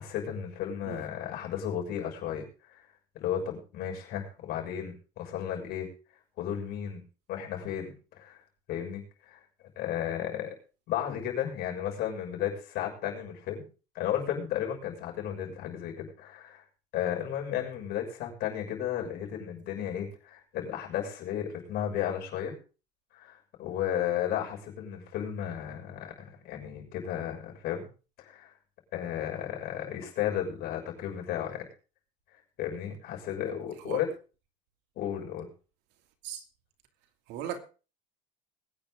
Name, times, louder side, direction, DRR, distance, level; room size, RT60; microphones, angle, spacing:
voice 1, 0.0-2.4 2.7-2.9 3.1-5.9 6.4-7.0 7.3-8.4 8.7-9.4 9.8-10.5 10.9-13.7 13.9-16.6 16.9-22.5 23.1-27.9 28.2-28.5 28.9-31.7 32.6-34.1 35.0-35.5, left 10 dB, 60° left, 6.5 m, -34 dB
voice 2, 0.9-1.0 33.9-34.0 36.2-36.4 37.3-37.6, right 10 dB, 70° right, 2.8 m, -37 dB
21.0 x 9.8 x 3.8 m
cardioid pair, 135°, 19 cm